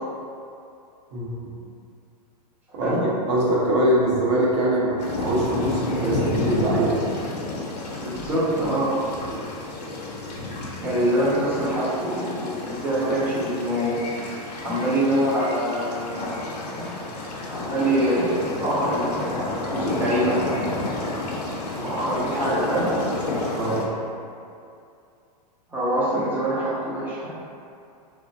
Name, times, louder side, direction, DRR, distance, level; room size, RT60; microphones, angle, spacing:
voice 1, 1.1-1.5 2.7-3.0 3.3-7.0 23.5-23.9, right 1 dB, 45° right, -5 dB, 0.6 m, -23 dB
voice 2, 2.7-3.0 8.0-9.0 10.8-14.0 14.6-16.3 16.6-17.0 17.5-19.4 19.7-20.4 21.7-22.9 25.7-27.4, right 1 dB, 10° right, -9 dB, 0.4 m, -24 dB
sound 1, 5.0-23.8, left 2 dB, 80° left, 0.6 m, -30 dB
2.8 x 2.0 x 2.6 m, 2.5 s
hypercardioid pair, 155°, 21 cm